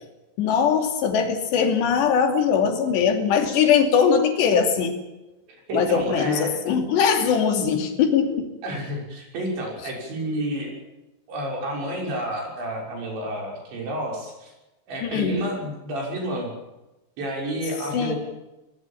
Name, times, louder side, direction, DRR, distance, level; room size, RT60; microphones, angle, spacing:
voice 1, 0.4-5.0 5.7-8.5 15.0-15.4 17.9-18.1, left 7 dB, 70° left, 4 dB, 4.8 m, -21 dB
voice 2, 5.7-6.5 8.6-10.7 11.3-14.5 14.9-16.5 17.2-18.2, right 1 dB, 70° right, 0 dB, 8.6 m, -30 dB
23.5 x 20.5 x 7.4 m, 1.0 s
omnidirectional pair, 5.3 m